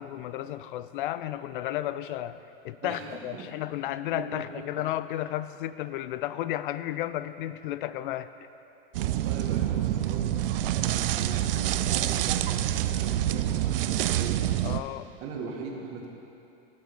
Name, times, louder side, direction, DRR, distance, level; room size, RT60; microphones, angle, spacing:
voice 1, 0.0-8.3 14.6-15.1, left 13 dB, 60° left, 14 dB, 0.4 m, -33 dB
voice 2, 2.8-3.5 4.1-4.6 9.0-14.4 15.2-16.1, right 4 dB, 50° right, 0 dB, 1.8 m, -40 dB
sound 1, 8.9-14.8, right 13 dB, 70° right, 0.5 m, -27 dB
17.0 x 6.7 x 3.4 m, 2.9 s
hypercardioid pair, 90°, 29 cm